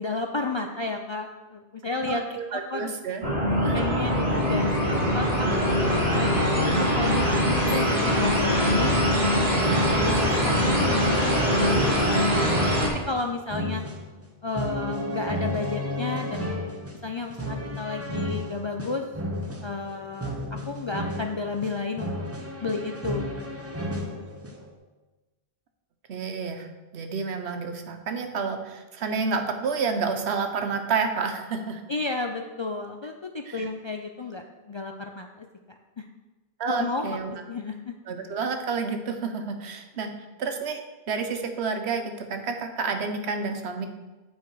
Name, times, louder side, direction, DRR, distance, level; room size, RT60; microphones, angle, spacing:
voice 1, 0.0-2.2 2.5-2.9 3.7-5.7 6.0-9.5 9.9-13.8 14.4-16.6 17.0-19.0 19.6-20.3 20.7-22.1 22.6-23.4 31.9-35.5 36.0-36.1 36.7-37.9, left 3 dB, 50° left, 3 dB, 0.3 m, -32 dB
voice 2, 2.1-3.2 3.6-3.8 26.1-26.7 26.9-31.8 33.5-33.7 36.6-37.3 38.1-40.1 40.4-40.8 41.1-43.9, right 5 dB, 90° right, 6 dB, 1.1 m, -29 dB
sound 1, 3.2-12.9, equal, 35° right, 1.5 m, -23 dB
sound 2, 9.3-24.7, equal, 15° right, 0.6 m, -33 dB
8.4 x 4.5 x 4.6 m, 1.2 s
omnidirectional pair, 1.1 m